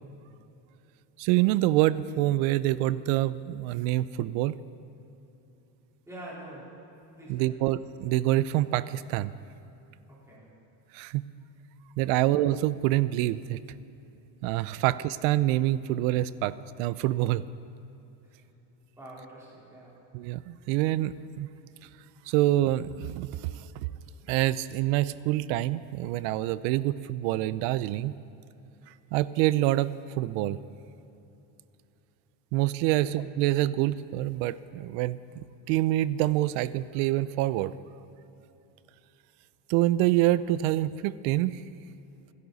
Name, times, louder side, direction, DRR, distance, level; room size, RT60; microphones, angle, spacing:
voice 1, 1.2-4.6 7.3-9.3 10.9-11.2 12.0-13.6 14.4-16.5 16.8-17.4 20.1-21.5 22.3-23.3 23.5-23.6 24.3-28.1 29.1-30.6 32.5-37.7 39.7-41.6, right 15 dB, 80° right, 17 dB, 0.6 m, -26 dB
voice 2, 6.1-6.7 7.2-7.7 10.1-10.5 12.1-12.2 14.7-14.9 18.2-18.4 19.0-19.9 32.9-33.0, right 1 dB, 5° right, -7 dB, 4.0 m, -46 dB
28.5 x 11.0 x 4.1 m, 3.0 s
cardioid pair, 180°, 45 cm